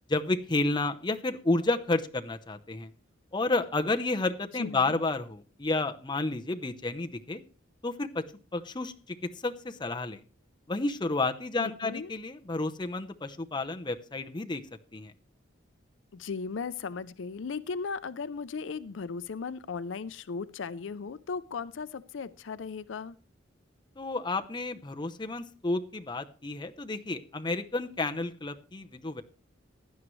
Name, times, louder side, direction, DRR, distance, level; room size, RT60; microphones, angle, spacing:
voice 1, 0.1-2.9 3.3-7.4 7.8-8.2 8.5-10.2 10.7-14.6 14.9-15.1 24.0-29.2, left 2 dB, 25° left, 0.7 m, -31 dB
voice 2, 4.5-5.0 11.6-12.1 16.1-23.2, left 5 dB, 70° left, 0.5 m, -37 dB
16.0 x 11.0 x 3.1 m
head